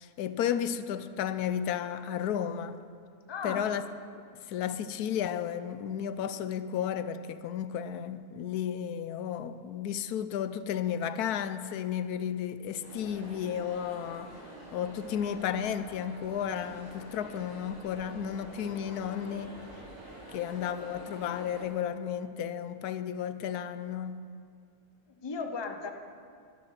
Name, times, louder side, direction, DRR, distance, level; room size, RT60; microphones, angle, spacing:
voice 1, 0.0-2.8 3.4-3.8 4.5-14.4 14.7-19.5 20.3-24.2, left 9 dB, 85° left, 1.1 m, -33 dB
voice 2, 3.3-3.8 20.2-20.4 25.2-25.9, left 4 dB, 25° left, 0.7 m, -36 dB
sound 1, 12.8-21.7, right 1 dB, 25° right, 2.3 m, -47 dB
14.0 x 11.5 x 5.8 m
omnidirectional pair, 1.6 m